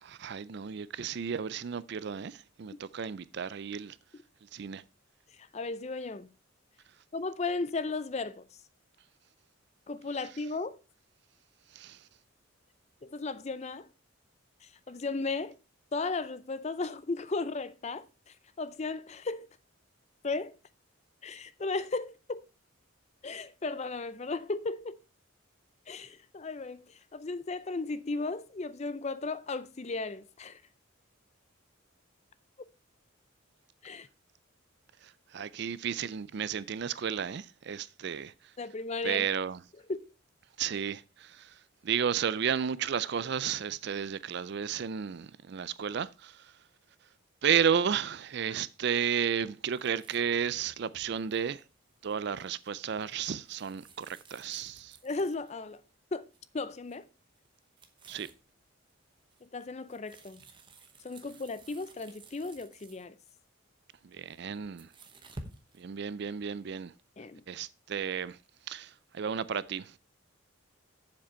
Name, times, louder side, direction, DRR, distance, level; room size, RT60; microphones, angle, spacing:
voice 1, 0.0-4.0 4.5-4.8 11.7-12.0 35.0-38.3 39.0-39.6 40.6-41.5 41.8-46.5 47.4-51.6 52.0-55.0 58.1-58.3 64.0-64.9 65.8-66.9 67.5-68.4 68.7-69.9, right 7 dB, 55° right, 0.4 m, -33 dB
voice 2, 5.3-6.3 7.1-8.6 9.9-10.8 13.0-13.9 14.6-15.6 15.9-19.5 20.2-20.6 21.2-22.4 23.2-25.0 25.9-30.6 33.8-34.1 38.6-39.3 39.9-40.1 55.0-55.8 56.1-56.3 56.5-57.1 59.4-60.4 61.0-63.2 67.2-67.4, left 3 dB, 30° left, 0.5 m, -35 dB
sound 1, 49.7-55.7 56.3-56.6 56.9-57.0 57.3-58.4 58.9-63.3 64.2-65.8, right 2 dB, 25° right, 0.9 m, -53 dB
7.4 x 7.3 x 4.4 m
head